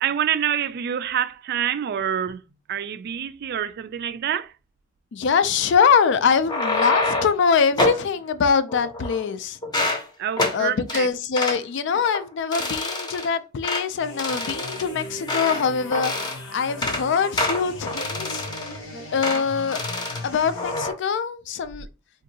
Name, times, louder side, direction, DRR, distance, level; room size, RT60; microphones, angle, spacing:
voice 1, 0.0-2.4 2.7-4.5 10.2-11.1, right 9 dB, 55° right, 0.3 m, -26 dB
voice 2, 5.1-9.6 10.5-18.4 19.1-19.8 20.2-21.9, left 6 dB, 60° left, 0.4 m, -23 dB
sound 1, 6.3-7.4 7.8-8.0 8.7-9.3 9.6-10.0 10.4-10.6 10.9-11.0 11.4-11.6 12.0-12.2 12.5-13.3 13.6-13.8 14.2-15.6 15.9-16.4 16.7-17.0 17.4-18.8 19.2-19.4 19.7-20.2 20.6-20.9, left 2 dB, 20° left, 0.6 m, -26 dB
sound 2, 14.0-20.8, left 1 dB, 80° left, 0.9 m, -38 dB
3.8 x 2.6 x 2.7 m
head